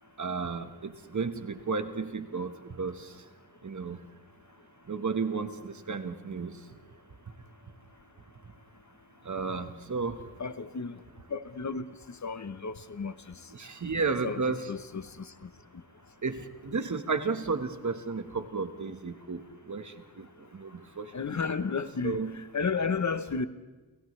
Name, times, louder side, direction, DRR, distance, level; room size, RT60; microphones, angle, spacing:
voice 1, 0.2-3.0 3.6-4.0 4.9-6.6 9.2-10.2 13.6-14.7 16.2-19.4 19.7-20.2 20.5-20.7 21.0-21.1 22.0-22.4, right 4 dB, 45° right, 1.5 m, -32 dB
voice 2, 10.4-10.9 11.3-11.8 12.2-13.1 14.2-15.3 21.1-22.2 22.5-23.5, left 5 dB, 45° left, 1.0 m, -32 dB
29.5 x 29.0 x 3.3 m
wide cardioid pair, 75°, 39 cm